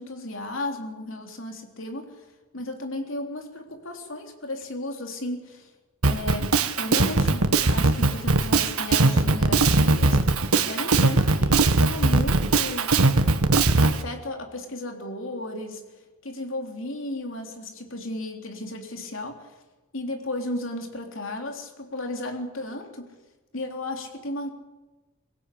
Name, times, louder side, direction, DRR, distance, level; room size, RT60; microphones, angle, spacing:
voice 1, 0.0-2.3 2.5-5.7 6.0-10.2 10.6-13.0 13.7-15.8 16.2-19.5 19.9-23.1 23.5-24.5, left 1 dB, 65° left, 3 dB, 3.7 m, -34 dB
Drum kit, 6.0-14.0, right 3 dB, 90° right, 1.6 m, -20 dB
23.5 x 16.0 x 8.7 m, 1.2 s
head